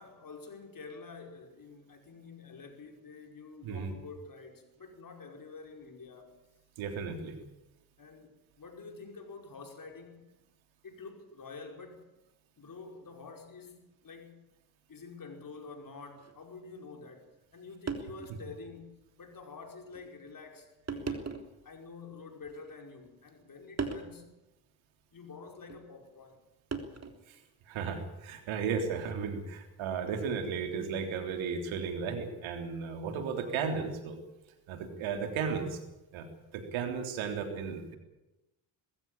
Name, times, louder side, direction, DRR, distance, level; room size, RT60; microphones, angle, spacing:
voice 1, 0.0-6.4 8.0-8.3 8.6-10.3 10.8-12.1 12.6-14.4 14.9-21.4 21.6-24.3 25.1-26.4, left 4 dB, 45° left, 3 dB, 5.4 m, -48 dB
voice 2, 6.8-7.4 18.3-18.4 27.3-27.4 27.7-34.2 34.7-35.8 36.1-38.0, right 6 dB, 80° right, 5 dB, 3.6 m, -35 dB
sound 1, 16.2-16.3 17.4-17.5 17.9-18.4 18.9-19.0 19.9-20.1 20.9-21.6 22.4-23.1 23.8-24.1 25.7-25.9 26.7-27.3 28.9-29.2, right 4 dB, 35° right, 3.5 m, -38 dB
21.0 x 15.5 x 8.9 m, 0.97 s
supercardioid pair, 65°, 47 cm